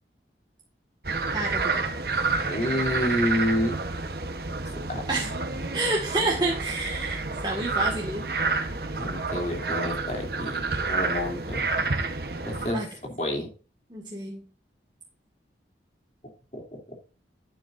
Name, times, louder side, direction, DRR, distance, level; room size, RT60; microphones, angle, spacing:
sound 1, 1.0-12.7, right 3 dB, 60° right, 1.1 m, -29 dB
voice 1, 1.3-1.8 5.1-5.3 5.7-8.3 12.7-12.9 13.9-14.4, right 2 dB, 25° right, -2 dB, 1.8 m, -29 dB
voice 2, 2.5-3.7 4.9-5.0 9.0-11.7 12.5-13.5 16.5-16.8, left 1 dB, 40° left, 2 dB, 3.0 m, -29 dB
11.5 x 9.2 x 2.6 m, 0.37 s
head